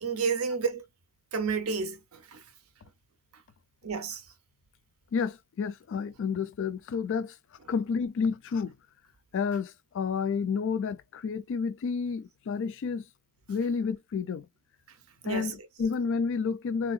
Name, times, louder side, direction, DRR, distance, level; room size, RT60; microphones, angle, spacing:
voice 1, 0.0-0.8 1.3-2.0 2.3-2.4 3.8-4.2 15.2-15.5, right 5 dB, 85° right, 0.6 m, -30 dB
voice 2, 5.1-7.3 7.7-8.7 9.3-13.0 13.5-14.5 15.3-16.9, left 5 dB, 60° left, 0.4 m, -30 dB
3.3 x 2.7 x 2.3 m
head